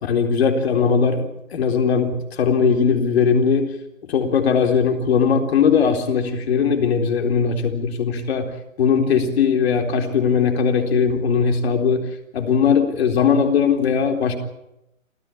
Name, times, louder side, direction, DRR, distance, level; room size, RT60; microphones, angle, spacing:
voice 1, 0.0-3.7 4.0-8.5 8.8-12.0 12.3-14.3, left 6 dB, 50° left, 5 dB, 4.1 m, -19 dB
27.5 x 14.5 x 8.7 m, 0.86 s
hypercardioid pair, 155°, 40 cm